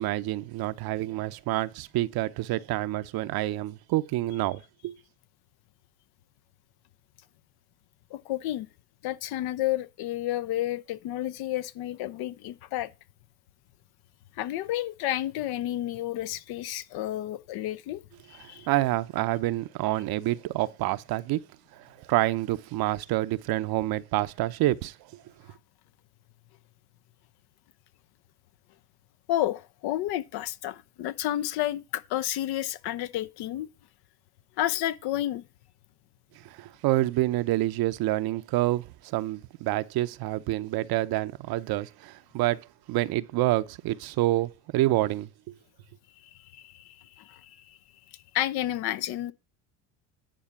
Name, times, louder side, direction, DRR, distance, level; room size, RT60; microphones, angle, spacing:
voice 1, 0.0-5.0 18.4-21.5 21.7-25.0 36.4-45.5, right 16 dB, 55° right, 0.8 m, -28 dB
voice 2, 8.1-8.7 9.0-12.9 14.4-18.0 18.3-18.7 29.3-33.7 34.6-35.4 46.4-47.8 48.3-49.3, left 13 dB, 60° left, 0.7 m, -31 dB
10.0 x 4.2 x 6.9 m
supercardioid pair, 90°, 44 cm